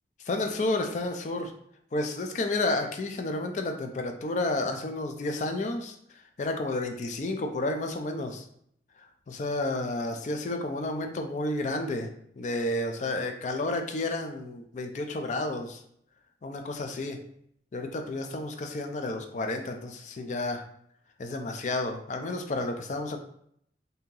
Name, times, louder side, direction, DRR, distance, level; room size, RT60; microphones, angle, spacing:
voice 1, 0.2-1.5 1.9-6.0 6.4-8.4 9.0-12.1 12.4-15.8 16.4-17.2 17.7-20.6 21.2-23.2, left 2 dB, 40° left, 5 dB, 0.4 m, -31 dB
2.7 x 2.7 x 3.7 m, 0.69 s
head